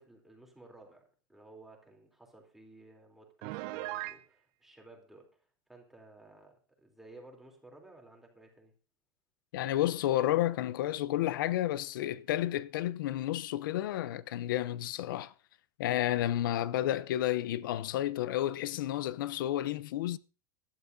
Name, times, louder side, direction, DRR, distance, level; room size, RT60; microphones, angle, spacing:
voice 1, 0.0-5.4 5.7-8.7, right 2 dB, 5° right, 3.3 m, -55 dB
Piano, 3.4-4.2, right 17 dB, 50° right, 0.7 m, -38 dB
voice 2, 9.5-15.3 15.8-20.2, left 13 dB, 80° left, 0.7 m, -31 dB
20.5 x 12.0 x 2.7 m
supercardioid pair, 150°, 11 cm